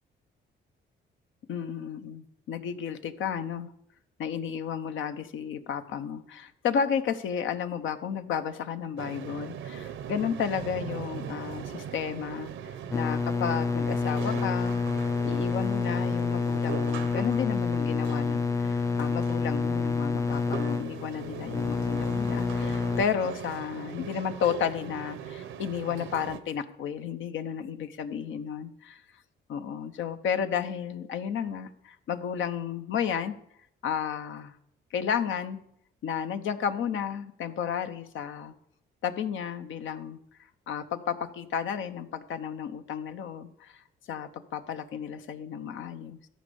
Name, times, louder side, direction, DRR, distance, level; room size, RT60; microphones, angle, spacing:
voice 1, 1.5-3.7 4.2-12.5 12.9-29.0 29.5-33.3 33.8-34.5 34.9-35.6 36.0-38.5 39.0-40.2 40.7-43.8 44.1-46.2, left 7 dB, 75° left, 9 dB, 0.9 m, -32 dB
sound 1, 9.0-26.4, right 8 dB, 85° right, 0.9 m, -40 dB
sound 2, 12.9-23.0, left 4 dB, 15° left, 0.3 m, -28 dB
13.5 x 5.3 x 6.9 m, 0.73 s
cardioid pair, 90°, 20 cm